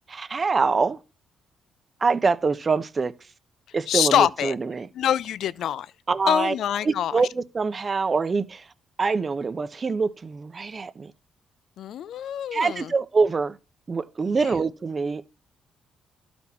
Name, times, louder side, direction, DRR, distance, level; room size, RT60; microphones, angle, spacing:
voice 1, 0.1-1.0 2.0-3.1 3.7-4.9 6.1-6.5 6.8-8.7 9.0-11.1 12.5-13.6 13.9-15.2, right 4 dB, 35° right, 0.7 m, -25 dB
voice 2, 3.9-4.6 4.9-5.9 6.3-7.2 11.8-12.9, left 10 dB, 70° left, 0.4 m, -24 dB
12.5 x 4.4 x 4.2 m
cardioid pair, 75°, 0 cm